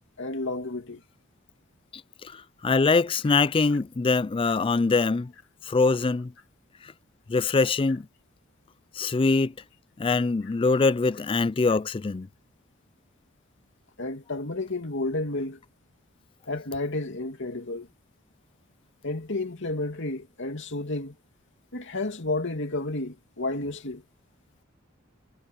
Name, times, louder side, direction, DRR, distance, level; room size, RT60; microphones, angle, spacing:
voice 1, 0.2-1.0 14.0-15.6 16.5-17.9 19.0-21.1 21.7-24.0, left 2 dB, 60° left, 2.8 m, -31 dB
voice 2, 2.2-5.3 5.7-6.3 7.3-8.1 9.0-9.5 10.0-12.3, left 4 dB, 25° left, 0.4 m, -23 dB
head